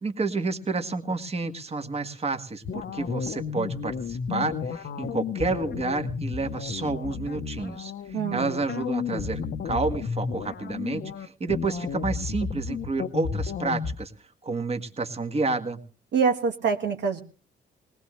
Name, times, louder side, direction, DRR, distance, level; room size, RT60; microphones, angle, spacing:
voice 1, 0.0-14.1 14.4-15.8, right 3 dB, 30° right, 7 dB, 1.6 m, -30 dB
sound 1, 2.6-13.9, left 6 dB, 60° left, 0.9 m, -32 dB
voice 2, 8.1-8.6 16.1-17.2, right 5 dB, 65° right, 4 dB, 1.3 m, -25 dB
21.0 x 18.5 x 3.2 m, 0.37 s
cardioid pair, 90°, 20 cm